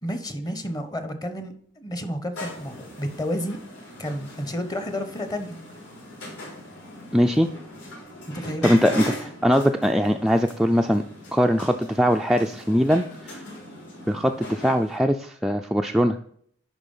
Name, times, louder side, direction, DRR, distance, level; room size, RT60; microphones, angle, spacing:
voice 1, 0.0-3.6 4.0-5.6 8.3-8.8, equal, 20° left, 9 dB, 1.0 m, -31 dB
sound 1, 2.3-15.0, equal, 60° left, 3.9 m, -39 dB
voice 2, 7.1-7.5 8.6-9.0 9.4-11.0 11.3-13.4 14.1-16.2, equal, ahead, 3 dB, 0.3 m, -21 dB
10.5 x 4.0 x 5.4 m, 0.63 s
head